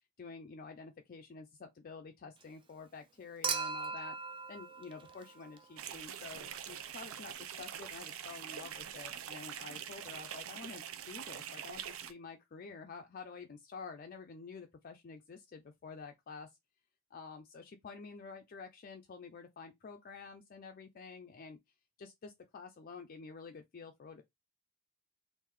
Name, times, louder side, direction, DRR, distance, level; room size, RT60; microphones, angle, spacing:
voice 1, 0.2-4.2 4.5-16.5 17.1-21.6 22.0-24.2, left 4 dB, 45° left, 0.4 m, -49 dB
Human group actions / Chink clink / Liquid, 3.4-5.8 7.3-7.4, right 5 dB, 25° right, 0.5 m, -39 dB
sound 1, 5.8-12.1, right 9 dB, 75° right, 0.5 m, -44 dB
3.0 x 2.6 x 3.7 m
head